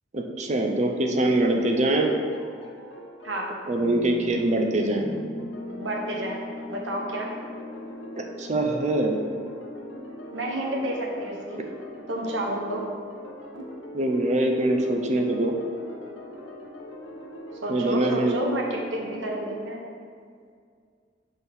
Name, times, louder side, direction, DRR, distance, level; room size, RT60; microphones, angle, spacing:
voice 1, 0.1-2.1 3.7-5.1 8.2-9.2 13.9-15.6 17.7-18.4, right 1 dB, 40° right, 3 dB, 0.6 m, -23 dB
sound 1, 0.9-19.5, equal, 90° left, 0.8 m, -42 dB
Piano, 4.3-12.8, left 3 dB, 25° left, 0.6 m, -42 dB
voice 2, 5.8-7.3 10.3-11.7 12.1-12.8 13.5-13.6 17.6-19.8, right 1 dB, 80° right, -1 dB, 1.0 m, -30 dB
6.2 x 4.4 x 3.5 m, 2.2 s
head